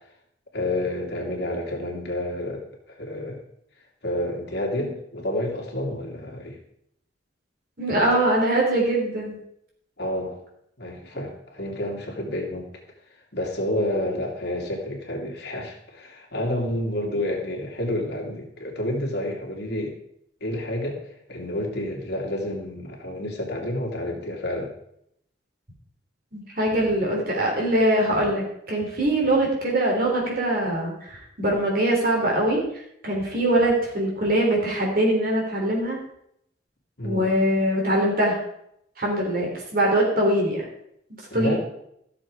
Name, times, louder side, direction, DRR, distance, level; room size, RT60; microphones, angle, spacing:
voice 1, 0.5-2.6 2.9-3.4 4.0-6.6 10.0-10.4 10.8-12.7 13.3-20.0 20.4-21.0 21.3-24.7 37.0-37.3 41.3-41.6, left 1 dB, 65° left, 0 dB, 2.6 m, -29 dB
voice 2, 7.8-9.4 26.3-32.6 33.0-36.0 37.0-38.4 39.0-40.6 41.3-41.6, right 1 dB, 55° right, -1 dB, 3.5 m, -22 dB
14.0 x 7.0 x 4.9 m, 0.74 s
head